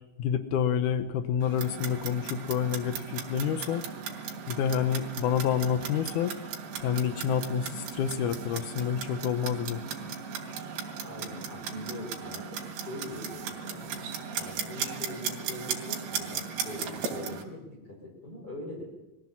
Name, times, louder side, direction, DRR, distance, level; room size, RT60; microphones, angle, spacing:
voice 1, 0.2-3.8 4.5-6.3 6.8-9.8, left 8 dB, 85° left, 10 dB, 1.8 m, -28 dB
Clock, 1.4-17.4, right 6 dB, 85° right, 5.0 m, -37 dB
voice 2, 11.0-14.0 14.4-18.8, left 1 dB, 20° left, -5 dB, 5.5 m, -42 dB
23.0 x 15.0 x 7.5 m, 1.0 s
omnidirectional pair, 4.9 m